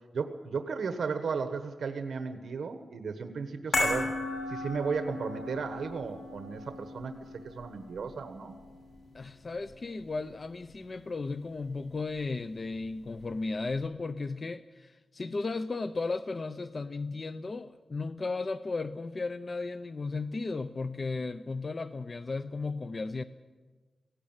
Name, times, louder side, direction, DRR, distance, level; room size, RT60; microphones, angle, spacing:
voice 1, 0.1-4.1 4.5-7.1 7.4-8.5, right 5 dB, 90° right, 7 dB, 1.3 m, -34 dB
sound 1, 3.7-10.1 10.4-10.6, left 2 dB, 80° left, 7.0 m, -36 dB
voice 2, 9.1-23.2, left 3 dB, 35° left, 11 dB, 0.5 m, -35 dB
18.0 x 16.5 x 8.9 m, 1.3 s
wide cardioid pair, 160°, 0 cm